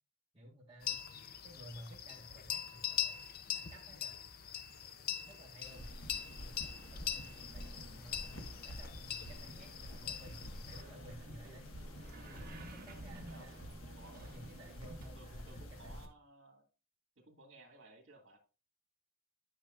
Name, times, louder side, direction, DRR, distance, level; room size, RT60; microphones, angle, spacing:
voice 1, 0.3-1.0 1.4-3.2 3.5-4.3 5.2-5.9 6.4-11.7 12.3-16.0, equal, 25° right, -5 dB, 1.6 m, -55 dB
sound 1, 0.8-10.8, left 9 dB, 50° left, 0.6 m, -42 dB
sound 2, 5.6-16.1, equal, 75° left, 1.4 m, -49 dB
sound 3, 7.7-15.1, right 2 dB, 45° right, 1.2 m, -55 dB
voice 2, 13.3-14.3 15.2-16.6 17.2-18.4, right 2 dB, 65° right, 1 dB, 1.9 m, -59 dB
10.0 x 6.6 x 2.5 m, 0.33 s
head